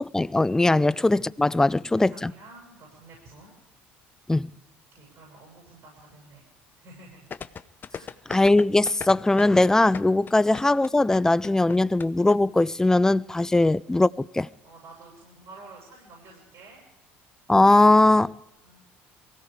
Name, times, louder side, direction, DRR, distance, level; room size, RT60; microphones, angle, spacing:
voice 1, 0.0-2.3 4.3-4.5 8.3-14.5 17.5-18.3, left 2 dB, 10° left, 0.4 m, -20 dB
voice 2, 1.9-3.5 4.9-6.4 6.7-7.3 7.9-8.1 13.5-13.6 14.6-16.8 18.6-18.8, right 3 dB, 55° right, 7.9 m, -49 dB
sound 1, 7.3-12.4 12.6-12.7, left 6 dB, 35° left, 0.8 m, -37 dB
23.5 x 16.5 x 3.6 m
hypercardioid pair, 65°, 6 cm